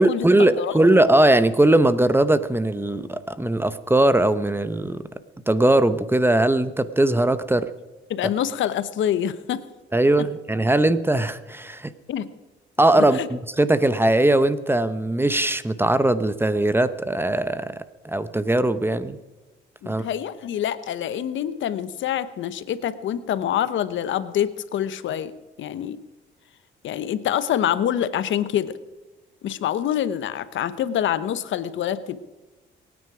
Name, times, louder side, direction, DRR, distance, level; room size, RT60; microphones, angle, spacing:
voice 1, 0.0-5.0 5.5-7.7 9.9-11.9 12.8-17.8 18.0-19.2 19.9-20.0, right 1 dB, 10° right, 13 dB, 0.8 m, -20 dB
voice 2, 8.1-9.6 12.1-12.3 13.1-13.3 19.8-25.3 25.6-26.0 26.8-28.8 29.4-32.2, left 10 dB, 75° left, 14 dB, 0.9 m, -26 dB
23.0 x 9.7 x 4.9 m, 1.2 s
cardioid pair, 90°, 20 cm